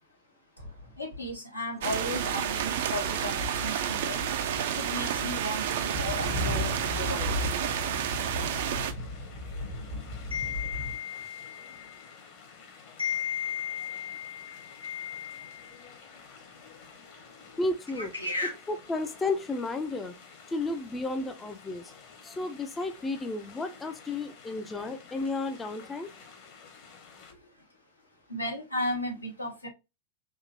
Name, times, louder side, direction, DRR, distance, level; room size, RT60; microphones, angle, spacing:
sound 1, 0.6-1.3 2.0-3.1 3.4-11.0, left 2 dB, 75° right, 1.2 m, -37 dB
voice 1, 1.0-4.2 4.7-7.3 10.3-12.0 13.0-15.8 17.9-18.6 28.3-29.7, left 3 dB, 85° left, 1.0 m, -35 dB
sound 2, 1.8-8.9, right 9 dB, 55° right, 0.4 m, -30 dB
sound 3, 8.5-27.3, left 5 dB, 45° left, 1.0 m, -52 dB
voice 2, 17.6-18.1 18.7-20.1 20.5-21.9 22.2-26.1, left 2 dB, 15° left, 0.4 m, -32 dB
3.6 x 2.7 x 2.4 m
figure-of-eight pair, 90°, 0 cm